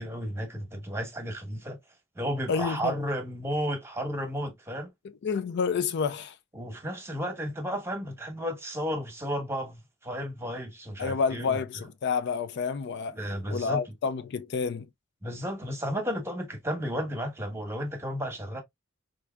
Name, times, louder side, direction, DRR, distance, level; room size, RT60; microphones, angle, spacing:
voice 1, 0.0-1.8 2.2-4.9 6.5-11.6 13.1-13.8 15.2-18.6, equal, 15° right, 1.0 m, -33 dB
voice 2, 2.5-2.9 5.2-6.3 11.0-13.2 13.5-14.9, left 5 dB, 55° left, 0.4 m, -29 dB
4.7 x 2.6 x 2.2 m
head